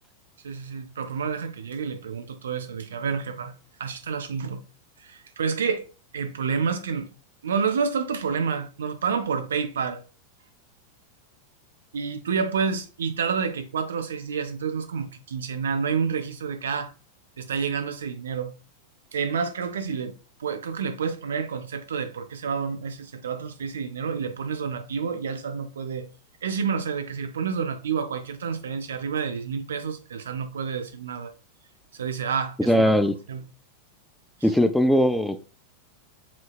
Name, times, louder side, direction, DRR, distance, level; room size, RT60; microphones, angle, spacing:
voice 1, 0.4-3.5 3.8-4.6 5.0-5.8 6.1-7.1 7.4-10.0 11.9-16.9 17.4-18.5 19.1-20.1 20.4-26.1 26.4-31.3 32.0-32.9 33.3-33.4, right 6 dB, 65° right, 0.6 m, -29 dB
voice 2, 32.7-33.1 34.4-35.5, equal, ahead, 0.3 m, -20 dB
7.3 x 2.8 x 2.3 m
figure-of-eight pair, 90°, 0 cm